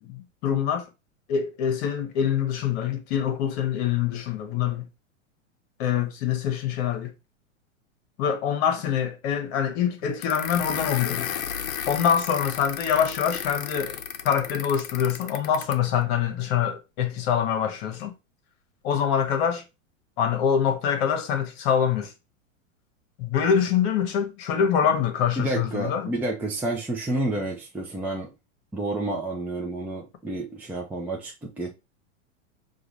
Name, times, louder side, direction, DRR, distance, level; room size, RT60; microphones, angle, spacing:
voice 1, 0.1-0.9 1.3-4.9 5.8-7.1 8.2-11.3 11.9-18.2 18.8-19.6 20.2-22.1 23.2-26.1, left 8 dB, 50° left, 1.1 m, -25 dB
sound 1, 10.2-15.9, left 9 dB, 80° left, 0.7 m, -34 dB
voice 2, 25.4-28.3 28.7-31.7, right 2 dB, 5° right, 0.6 m, -30 dB
4.9 x 2.5 x 3.0 m
hypercardioid pair, 115°, 41 cm